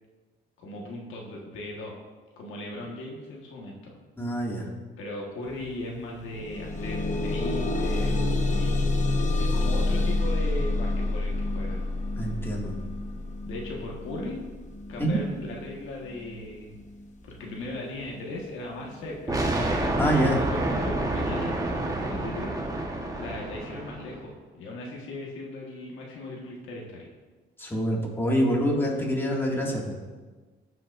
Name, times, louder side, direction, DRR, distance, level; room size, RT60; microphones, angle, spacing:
voice 1, 0.6-1.9 2.4-3.9 5.0-8.8 9.4-11.9 13.4-14.5 14.9-16.8 17.2-19.4 20.3-22.5 23.2-27.1, left 1 dB, 90° left, -1 dB, 1.5 m, -38 dB
voice 2, 4.2-4.7 12.2-12.7 15.0-15.2 20.0-20.4 27.6-29.9, equal, 10° left, -2 dB, 2.0 m, -26 dB
sound 1, 5.5-5.6 6.0-17.0 17.8-17.9 18.4-18.5, left 2 dB, 40° left, 1.1 m, -28 dB
sound 2, 19.3-24.2, right 1 dB, 15° right, 1.2 m, -28 dB
13.5 x 5.9 x 2.5 m, 1.3 s
cardioid pair, 90°, 20 cm